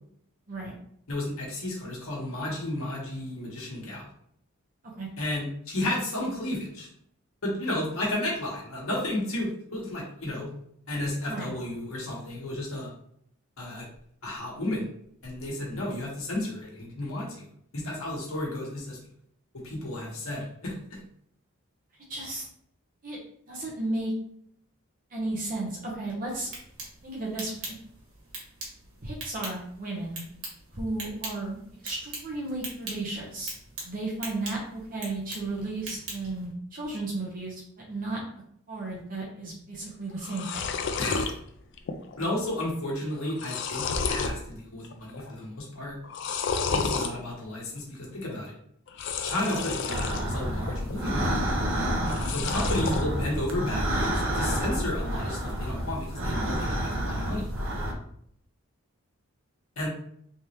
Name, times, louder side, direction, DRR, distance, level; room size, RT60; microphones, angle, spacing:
voice 1, 1.1-4.1 5.2-6.9 7.4-10.5 10.9-12.9 13.6-13.9 14.2-14.9 15.2-17.5 17.7-19.0 19.5-21.0 41.0-41.3 42.2-46.0 46.7-48.5 49.2-51.5 52.3-57.5 59.8-59.9, left 1 dB, 80° left, -3 dB, 1.3 m, -32 dB
voice 2, 22.1-22.5 23.0-23.2 23.5-24.1 25.1-26.5 27.0-27.5 29.0-30.2 30.7-31.6 31.8-33.5 33.8-37.6 37.9-38.2 38.7-40.6 46.7-47.1, right 2 dB, 40° right, -3 dB, 0.9 m, -34 dB
sound 1, 26.3-36.5, right 2 dB, 80° right, 1.5 m, -42 dB
sound 2, 39.8-39.9 40.1-41.3 41.8-42.2 42.4-42.5 43.1-44.4 44.8-45.3 46.0-47.1 48.9-50.2 50.7-51.3 52.0-53.0, left 5 dB, 55° left, 0.4 m, -31 dB
sound 3, 49.9-57.9, equal, 65° right, 0.7 m, -29 dB
3.5 x 3.1 x 2.9 m, 0.69 s
head